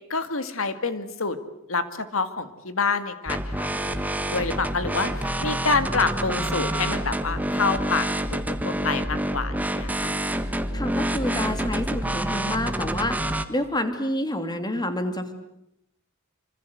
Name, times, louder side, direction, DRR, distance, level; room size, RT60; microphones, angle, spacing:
voice 1, 0.1-1.4 1.7-3.7 4.3-10.1, left 4 dB, 70° left, 10 dB, 2.2 m, -27 dB
sound 1, 3.3-13.4, right 1 dB, 10° right, 1.5 m, -27 dB
voice 2, 10.7-15.3, left 1 dB, 20° left, 8 dB, 2.8 m, -28 dB
26.0 x 26.0 x 8.1 m, 0.79 s
head